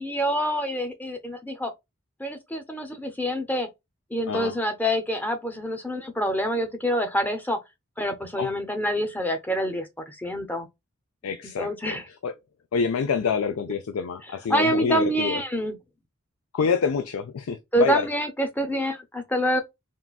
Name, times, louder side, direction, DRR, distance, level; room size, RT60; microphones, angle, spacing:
voice 1, 0.0-1.7 2.2-3.7 4.1-7.6 8.0-10.7 11.6-12.0 14.5-15.8 17.7-19.6, equal, 10° left, 0.5 m, -26 dB
voice 2, 11.2-12.0 12.2-12.3 12.7-15.4 16.5-18.1, left 6 dB, 85° left, 0.4 m, -26 dB
3.7 x 2.3 x 2.3 m
head